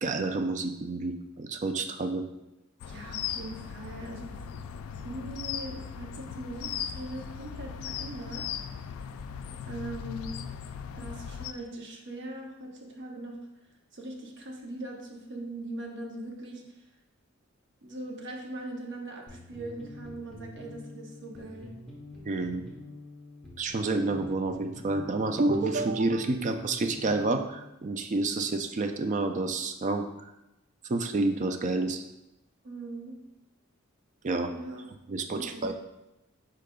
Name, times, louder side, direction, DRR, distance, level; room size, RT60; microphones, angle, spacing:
voice 1, 0.0-2.2 22.3-22.6 23.6-30.3 30.9-32.0 34.2-34.5 35.1-35.7, right 3 dB, 35° right, 6 dB, 0.4 m, -29 dB
sound 1, 2.8-11.5, left 8 dB, 85° left, 0.3 m, -38 dB
voice 2, 2.9-4.4 5.0-8.5 9.7-10.4 10.9-13.4 13.9-16.6 17.8-21.7 32.6-33.2 34.5-34.9 35.3-35.6, right 1 dB, 60° right, 0 dB, 0.7 m, -40 dB
sound 2, 19.3-27.7, left 1 dB, 5° left, 1.0 m, -46 dB
4.9 x 4.6 x 2.3 m, 0.91 s
head